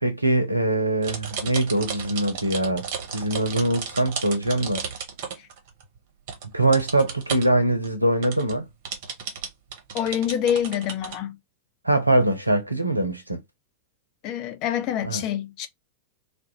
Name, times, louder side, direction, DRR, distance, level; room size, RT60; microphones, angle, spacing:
voice 1, 0.0-4.8 6.5-8.7 11.8-13.4 15.0-15.2, right 1 dB, 85° right, 0.6 m, -23 dB
sound 1, 1.0-6.0 6.3-7.5 7.8-7.9 8.2-11.2, right 6 dB, 50° right, 0.8 m, -34 dB
voice 2, 9.9-11.4 14.2-15.7, left 9 dB, 40° left, 0.4 m, -26 dB
2.4 x 2.1 x 2.8 m
figure-of-eight pair, 90°, 0 cm